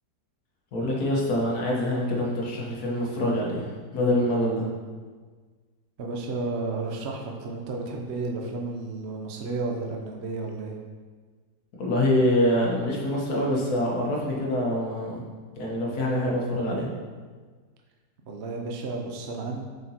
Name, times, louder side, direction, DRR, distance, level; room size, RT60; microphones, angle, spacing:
voice 1, 0.7-3.7 3.9-4.7 11.8-15.1 15.5-16.9, left 1 dB, 65° left, -3 dB, 1.7 m, -25 dB
voice 2, 6.0-10.8 18.3-19.6, right 3 dB, 55° right, 1 dB, 0.8 m, -32 dB
7.6 x 5.2 x 2.9 m, 1.5 s
omnidirectional pair, 1.8 m